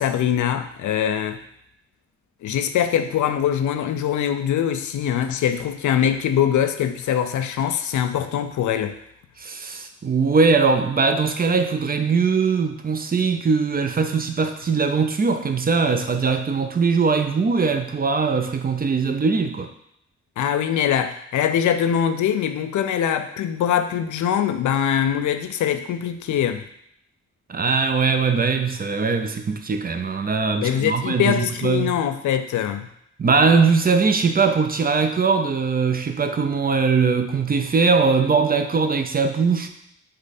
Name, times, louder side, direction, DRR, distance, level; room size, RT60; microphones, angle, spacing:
voice 1, 0.0-1.4 2.4-9.0 20.4-26.6 30.6-32.9, left 9 dB, 85° left, 8 dB, 0.5 m, -23 dB
voice 2, 9.4-19.7 27.5-31.9 33.2-39.7, right 4 dB, 30° right, 7 dB, 0.5 m, -21 dB
5.1 x 2.5 x 4.1 m, 0.74 s
cardioid pair, 80°, 29 cm